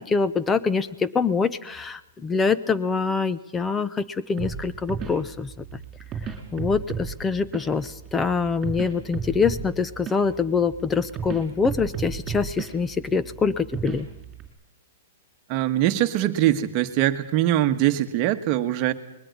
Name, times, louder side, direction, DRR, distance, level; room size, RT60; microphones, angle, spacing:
voice 1, 0.0-5.5 6.5-14.1, left 5 dB, 10° left, 15 dB, 0.7 m, -25 dB
sound 1, 4.4-14.5, right 6 dB, 20° right, 4.2 m, -35 dB
voice 2, 15.5-18.9, right 13 dB, 35° right, 7 dB, 1.3 m, -22 dB
21.5 x 13.5 x 9.5 m, 0.92 s
hypercardioid pair, 155°, 0 cm